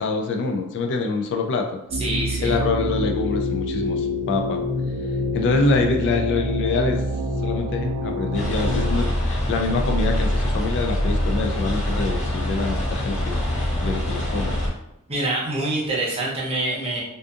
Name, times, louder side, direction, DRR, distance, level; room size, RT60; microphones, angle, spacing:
voice 1, 0.0-1.8 2.4-4.6 5.3-7.1 7.4-14.6, left 3 dB, 55° left, 4 dB, 0.3 m, -25 dB
voice 2, 1.9-2.6 15.1-17.0, right 2 dB, 25° right, -5 dB, 0.7 m, -25 dB
sound 1, 1.9-9.0, left 1 dB, 60° right, 0.6 m, -26 dB
sound 2, 8.3-14.7, left 1 dB, 35° left, 1.2 m, -24 dB
2.5 x 2.5 x 2.4 m, 0.86 s
head